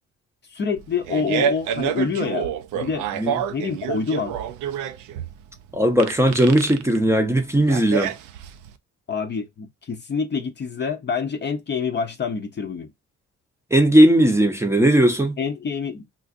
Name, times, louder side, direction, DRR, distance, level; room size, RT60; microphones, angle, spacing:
voice 1, 0.5-3.1 3.5-4.4 9.1-12.9 15.4-16.1, left 5 dB, 35° left, 0.5 m, -27 dB
Fart, 0.8-8.7, right 8 dB, 90° right, 0.5 m, -28 dB
voice 2, 5.7-8.1 13.7-15.4, right 1 dB, 10° right, 0.6 m, -17 dB
3.6 x 2.5 x 2.5 m
cardioid pair, 90°, 30 cm